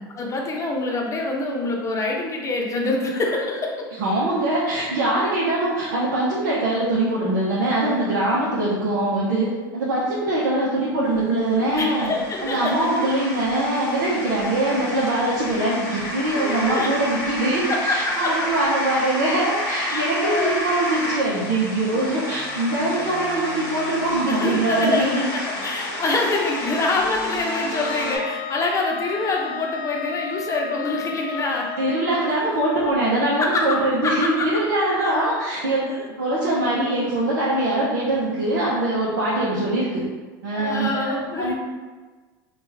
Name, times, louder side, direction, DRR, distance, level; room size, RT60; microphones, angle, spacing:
voice 1, 0.2-3.9 11.7-13.1 15.9-16.0 16.3-16.9 17.7-18.3 19.9-20.7 21.9-22.0 22.9-23.2 24.3-31.7 32.3-32.4 33.4-34.5 35.0-35.2 35.9-36.1 40.6-41.5, left 2 dB, 30° left, 0 dB, 0.7 m, -26 dB
voice 2, 4.0-12.1 12.4-25.3 31.8-35.8 36.2-40.0 40.4-41.5, right 1 dB, 85° right, -7 dB, 0.7 m, -22 dB
sound 1, 11.1-28.2, left 1 dB, 75° left, 0.9 m, -31 dB
Wind instrument woodwind instrument, 27.8-32.5, left 7 dB, 55° left, 0.4 m, -33 dB
3.0 x 2.4 x 3.4 m, 1.3 s
hypercardioid pair, 100°, 11 cm